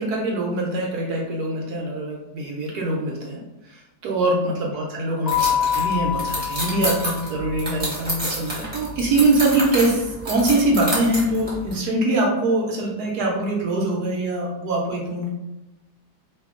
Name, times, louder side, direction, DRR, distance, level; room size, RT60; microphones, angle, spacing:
voice 1, 0.0-3.4 3.7-15.3, right 2 dB, 70° right, -1 dB, 1.1 m, -23 dB
Keyboard (musical), 5.3-7.8, left 8 dB, 40° left, 0.6 m, -26 dB
sound 1, 5.3-11.8, equal, 25° right, 1.0 m, -30 dB
2.8 x 2.6 x 3.5 m, 0.98 s
omnidirectional pair, 2.0 m